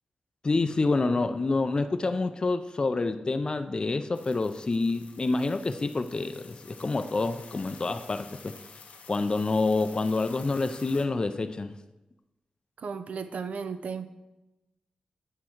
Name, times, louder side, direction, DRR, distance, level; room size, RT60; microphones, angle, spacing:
voice 1, 0.4-8.5 9.1-11.7, left 3 dB, 35° left, 9 dB, 0.4 m, -27 dB
sound 1, 4.1-11.1, left 5 dB, 80° left, 0.6 m, -50 dB
voice 2, 12.8-14.1, right 5 dB, 70° right, 11 dB, 0.4 m, -35 dB
8.4 x 3.6 x 4.5 m, 1.0 s
cardioid pair, 80°, 2 cm